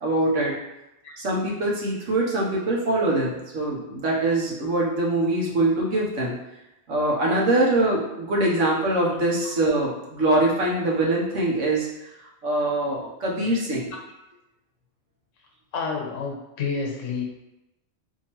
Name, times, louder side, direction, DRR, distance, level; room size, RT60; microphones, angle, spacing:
voice 1, 0.0-0.5 1.2-6.3 6.9-11.9 12.4-13.9, right 2 dB, 85° right, -4 dB, 1.3 m, -23 dB
voice 2, 15.7-17.2, left 5 dB, 85° left, 1 dB, 1.1 m, -29 dB
4.5 x 2.8 x 3.0 m, 0.92 s
omnidirectional pair, 1.3 m